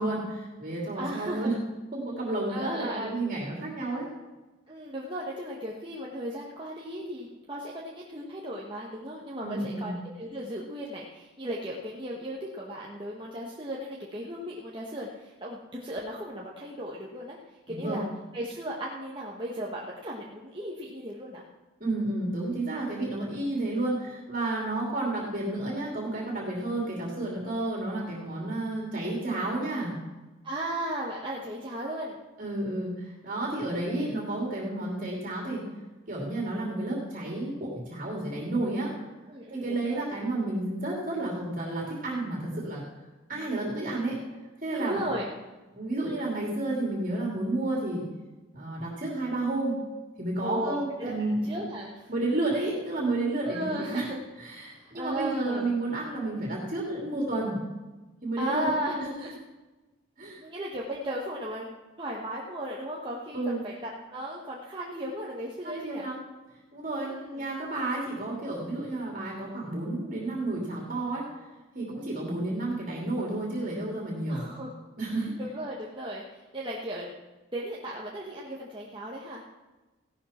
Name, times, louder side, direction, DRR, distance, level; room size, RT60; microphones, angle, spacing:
voice 1, 0.0-1.5 1.9-4.1 9.4-10.0 17.7-18.0 21.8-29.9 32.4-35.6 36.1-38.9 39.5-42.8 43.3-44.2 44.6-45.0 45.7-48.0 48.5-49.8 50.2-51.7 52.1-54.1 54.4-57.6 58.2-58.7 59.0-59.1 60.2-60.4 63.3-63.6 65.6-66.2 66.7-71.2 71.7-74.4 75.0-75.3, right 2 dB, 40° right, -3 dB, 2.8 m, -31 dB
voice 2, 1.0-1.5 2.5-3.1 4.7-17.4 17.7-18.1 18.3-21.4 30.4-32.2 39.3-40.1 43.3-43.8 44.7-45.3 50.4-51.1 51.5-52.1 53.4-54.2 54.7-55.8 58.4-59.3 60.4-66.1 67.0-67.3 74.3-74.8 75.4-77.1 77.5-79.5, right 1 dB, 25° right, -4 dB, 1.3 m, -36 dB
16.0 x 11.5 x 4.4 m, 1.1 s
head